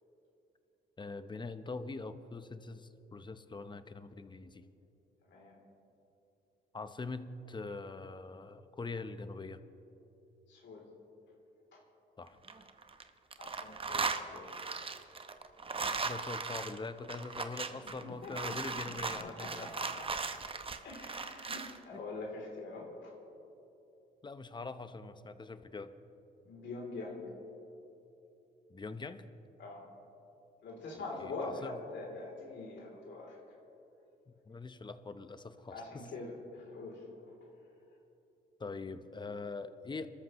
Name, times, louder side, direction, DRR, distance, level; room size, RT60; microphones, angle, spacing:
voice 1, 1.0-4.6 6.7-9.6 12.2-12.4 16.0-19.7 21.9-22.0 24.2-25.9 28.7-29.2 30.9-31.8 34.3-36.1 38.6-40.1, left 3 dB, 25° left, 11 dB, 0.8 m, -43 dB
voice 2, 10.5-10.8 11.7-11.8 13.4-14.5 18.0-18.7 19.2-19.9 20.4-20.5 20.8-23.1 26.4-27.2 29.6-29.8 30.6-33.4 35.7-37.0, left 3 dB, 65° left, -1 dB, 3.1 m, -44 dB
sound 1, 12.3-13.0 13.3-21.8, right 4 dB, 25° right, 0.8 m, -38 dB
27.0 x 13.5 x 3.0 m, 2.9 s
cardioid pair, 90°, 20 cm